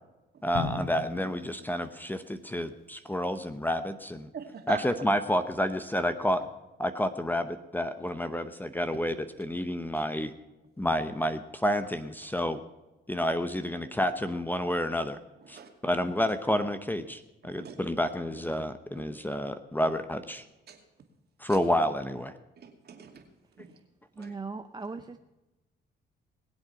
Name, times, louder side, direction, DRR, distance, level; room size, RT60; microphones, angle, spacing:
voice 1, 0.4-4.3 4.7-6.4 6.8-10.3 10.8-12.6 13.1-15.2 15.5-20.4 21.4-22.3 24.2-24.3, equal, 10° left, 10 dB, 0.9 m, -29 dB
Drum, 0.5-2.6, left 4 dB, 80° left, 2.5 m, -38 dB
voice 2, 4.3-4.8 9.9-10.1 15.4-15.7 17.4-17.8 18.9-19.0 20.7-20.8 21.5-21.6 22.6-23.3 23.6-23.7 24.2-24.3, right 6 dB, 55° right, 4 dB, 2.5 m, -42 dB
voice 3, 24.2-25.2, right 4 dB, 20° right, 7 dB, 0.7 m, -38 dB
20.5 x 8.0 x 5.8 m, 1.1 s
cardioid pair, 90°, 20 cm